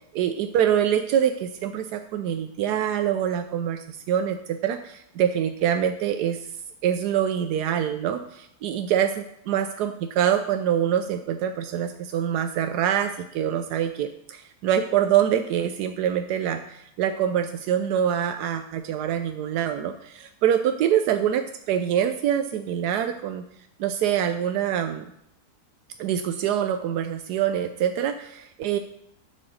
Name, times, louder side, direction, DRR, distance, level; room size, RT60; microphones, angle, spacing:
voice 1, 0.1-6.5 6.8-23.4 23.8-25.1 26.0-28.8, right 9 dB, 85° right, 8 dB, 1.2 m, -25 dB
7.7 x 7.6 x 6.3 m, 0.77 s
omnidirectional pair, 1.7 m